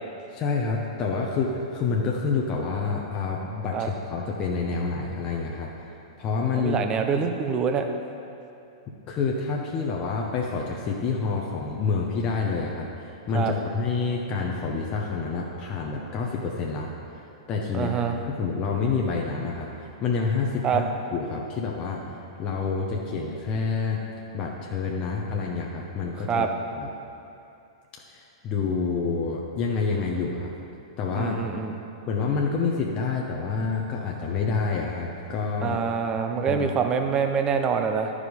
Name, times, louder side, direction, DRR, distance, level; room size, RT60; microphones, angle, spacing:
voice 1, 0.3-5.7 6.2-6.8 9.1-16.9 17.5-17.9 18.2-22.0 22.4-24.0 24.3-26.5 26.7-26.9 27.9-30.5 31.0-31.4 32.1-35.8 36.4-36.7, left 4 dB, 30° left, -1 dB, 0.9 m, -28 dB
voice 2, 6.6-7.8 13.3-13.5 17.7-18.2 20.6-20.8 26.3-26.5 31.2-31.8 35.6-38.1, right 6 dB, 25° right, 5 dB, 0.7 m, -25 dB
11.0 x 4.9 x 5.3 m, 2.7 s
hypercardioid pair, 110°, 3 cm